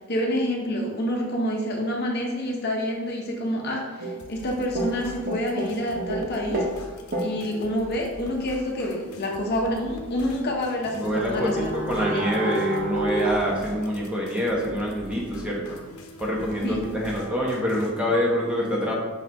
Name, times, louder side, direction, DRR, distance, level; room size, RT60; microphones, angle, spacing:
voice 1, 0.0-6.6 7.2-12.2 16.6-16.8, equal, 50° left, 0 dB, 0.8 m, -28 dB
sound 1, 4.0-4.5 4.7-6.8 7.1-7.4 10.4-10.5 10.8-13.3, right 1 dB, 40° right, 0.9 m, -29 dB
sound 2, 4.2-17.9, left 1 dB, 80° left, 0.9 m, -44 dB
voice 2, 10.9-15.8 16.2-18.9, equal, 5° right, -4 dB, 1.1 m, -26 dB
5.9 x 4.5 x 3.5 m, 1.3 s
head